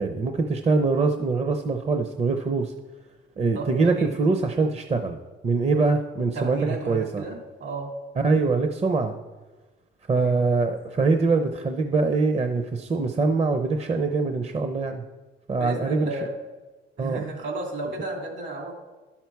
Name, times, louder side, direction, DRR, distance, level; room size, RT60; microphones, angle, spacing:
voice 1, 0.0-2.7 3.4-5.2 5.4-7.2 8.2-9.2 10.1-15.0 15.5-16.1 17.0-17.2, right 3 dB, 30° right, 6 dB, 0.6 m, -23 dB
voice 2, 3.3-3.7 4.0-4.1 6.3-7.9 10.2-10.4 15.6-16.3 17.0-18.7, right 2 dB, 65° right, 1 dB, 2.7 m, -33 dB
11.5 x 5.8 x 4.6 m, 1.2 s
cardioid pair, 90°, 20 cm